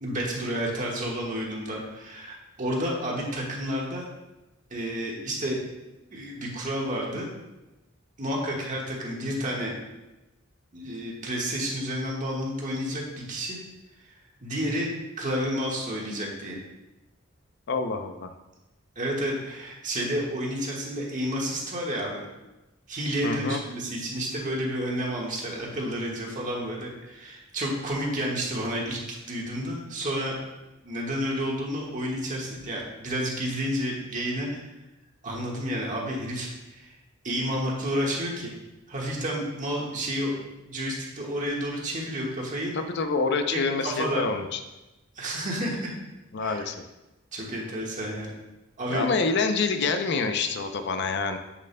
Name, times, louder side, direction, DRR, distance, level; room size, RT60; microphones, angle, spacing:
voice 1, 0.0-4.0 4.7-5.6 6.1-7.3 8.2-9.7 10.7-13.6 14.4-14.9 15.2-16.6 18.9-22.3 22.9-30.4 30.8-34.6 35.2-36.9 37.2-38.5 38.9-42.7 43.5-44.2 45.1-46.0 46.4-46.6 47.3-48.3 48.8-49.1, equal, 40° right, -2 dB, 1.5 m, -30 dB
voice 2, 17.7-18.3 23.2-23.6 42.7-44.6 46.3-46.8 48.9-51.4, left 4 dB, 60° left, 7 dB, 0.6 m, -27 dB
7.6 x 6.9 x 2.2 m, 1.0 s
head